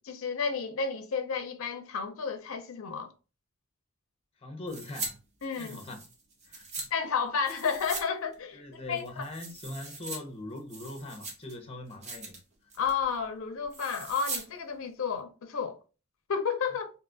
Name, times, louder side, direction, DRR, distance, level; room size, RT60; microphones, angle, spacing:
voice 1, 0.0-3.1 5.4-5.8 6.9-9.3 12.8-15.8 16.3-16.9, left 6 dB, 65° left, 0.5 m, -32 dB
voice 2, 4.4-5.2 5.6-6.0 6.4-6.7 8.5-12.4, left 1 dB, 25° left, 0.6 m, -41 dB
sound 1, 4.7-5.1 5.4-6.9 7.4-8.1 8.3-8.4 8.9-10.2 10.6-11.5 11.9-12.4 12.7-13.0 13.7-14.4 14.7-14.8, right 3 dB, 30° right, 0.8 m, -40 dB
2.7 x 2.3 x 3.7 m
head